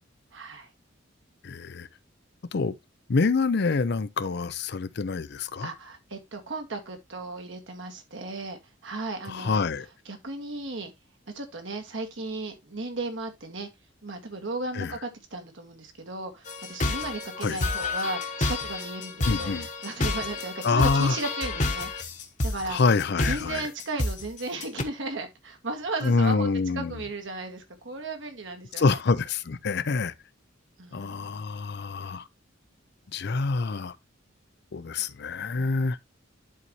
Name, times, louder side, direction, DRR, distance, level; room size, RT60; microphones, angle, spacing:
voice 1, 0.3-0.7 5.6-9.6 10.1-10.9 11.3-13.7 14.0-19.5 19.8-21.9 22.4-22.8 23.3-26.5 26.7-29.0 30.8-31.4, right 2 dB, 70° right, 1.8 m, -35 dB
voice 2, 1.4-1.9 2.5-2.7 3.1-5.7 9.3-9.9 14.7-14.9 17.4-17.6 19.3-19.7 20.6-21.2 22.7-23.7 26.0-26.9 28.8-30.1 30.9-32.3 33.1-34.0 34.7-36.0, left 4 dB, 55° left, 0.5 m, -26 dB
sound 1, 16.5-24.8, left 2 dB, 40° left, 1.1 m, -29 dB
11.0 x 4.2 x 3.0 m
head